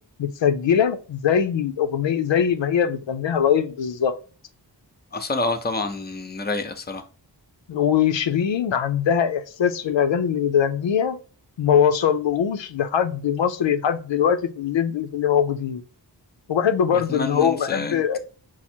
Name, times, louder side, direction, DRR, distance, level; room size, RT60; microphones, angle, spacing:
voice 1, 0.2-4.1 7.7-11.2 11.6-15.8 16.5-18.2, left 8 dB, 85° left, 0.6 m, -22 dB
voice 2, 5.1-7.0 16.9-18.0, left 2 dB, 25° left, 0.6 m, -28 dB
5.9 x 2.0 x 4.3 m
wide cardioid pair, 95°, 43 cm